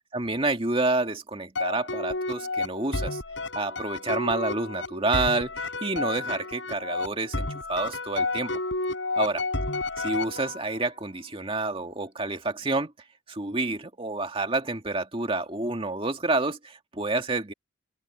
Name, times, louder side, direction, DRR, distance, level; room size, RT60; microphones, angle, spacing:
voice 1, 0.1-3.2 3.6-8.5 9.2-9.4 10.0-12.9 13.3-17.5, right 2 dB, 30° right, 2.0 m, -29 dB
sound 1, 1.5-10.8, left 3 dB, 75° left, 6.5 m, -31 dB
open air
head